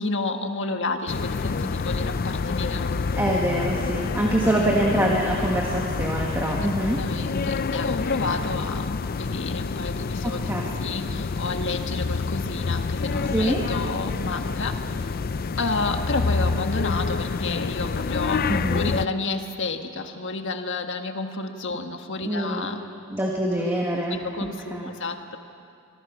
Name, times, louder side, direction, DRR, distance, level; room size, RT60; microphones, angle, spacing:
voice 1, 0.0-3.1 6.6-6.7 7.0-10.5 10.8-14.9 15.6-22.8 24.1-25.4, left 3 dB, 60° left, 6 dB, 1.5 m, -30 dB
sound 1, 1.1-19.1, left 4 dB, 45° left, 0.5 m, -27 dB
voice 2, 3.1-7.0 10.2-10.6 13.3-13.6 18.5-18.9 22.2-22.7 23.1-24.2 24.7-24.9, right 1 dB, 10° right, -2 dB, 1.9 m, -25 dB
25.5 x 23.5 x 6.1 m, 2.5 s
head